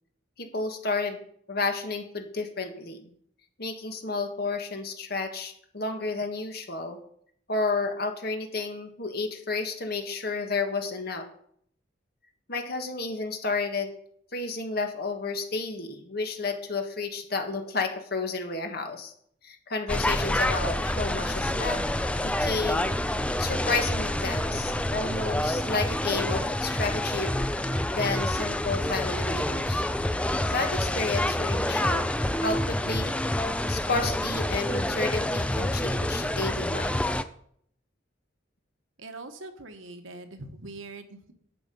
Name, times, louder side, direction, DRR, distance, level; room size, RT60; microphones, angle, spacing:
voice 1, 0.4-1.2 1.5-3.1 3.6-7.0 7.5-11.3 12.5-13.9 14.3-19.1 19.4-21.8 22.1-22.9 23.2-27.4 28.0-29.8 30.4-32.1 32.4-33.2 33.7-37.2, left 3 dB, 55° left, 5 dB, 1.6 m, -31 dB
sound 1, 19.9-37.2, left 1 dB, 5° left, 0.4 m, -27 dB
voice 2, 39.0-41.3, right 2 dB, 85° right, 7 dB, 1.3 m, -42 dB
11.0 x 7.8 x 5.4 m, 0.66 s
head